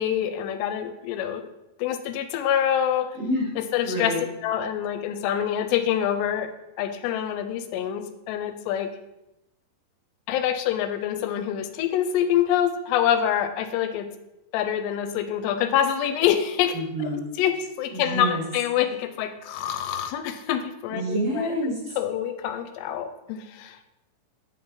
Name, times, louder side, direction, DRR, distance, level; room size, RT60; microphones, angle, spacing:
voice 1, 0.0-1.4 1.8-3.1 3.7-4.1 4.4-6.5 6.8-8.9 10.3-14.1 14.5-16.8 17.4-17.5 17.8-24.0, left 10 dB, 85° left, 8 dB, 2.7 m, -26 dB
voice 2, 3.1-3.5 3.8-4.3 16.7-17.2 17.9-18.4 20.9-22.0, equal, 45° right, -8 dB, 2.9 m, -28 dB
9.4 x 5.3 x 3.1 m, 0.90 s
omnidirectional pair, 4.9 m